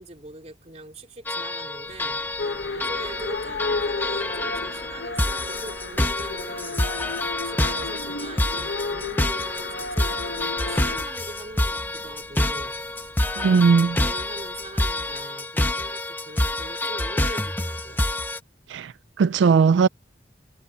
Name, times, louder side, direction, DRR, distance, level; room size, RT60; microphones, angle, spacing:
voice 1, 0.0-18.1, right 1 dB, 35° right, 3.4 m, -42 dB
sound 1, 1.3-18.4, left 1 dB, 10° left, 0.9 m, -27 dB
sound 2, 1.8-15.3, right 1 dB, 60° right, 7.6 m, -53 dB
sound 3, 2.4-11.0, left 3 dB, 80° left, 1.4 m, -33 dB
voice 2, 13.4-13.9 18.7-18.9 19.2-19.9, right 5 dB, 85° right, 0.3 m, -17 dB
head